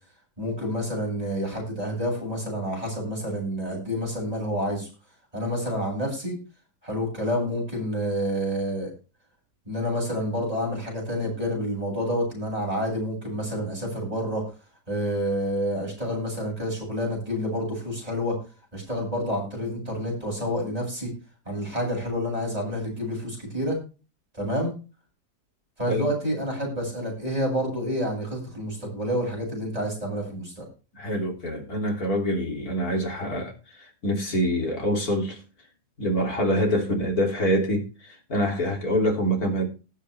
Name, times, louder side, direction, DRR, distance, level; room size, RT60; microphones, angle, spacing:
voice 1, 0.4-4.9 5.3-6.4 6.8-8.9 9.6-14.4 14.9-18.4 18.7-21.1 21.4-23.8 24.3-24.7 25.8-30.7, equal, 20° right, 8.2 m, -28 dB
voice 2, 30.9-35.4 36.0-39.7, equal, 60° left, 3.7 m, -25 dB
19.5 x 6.8 x 3.5 m
omnidirectional pair, 1.8 m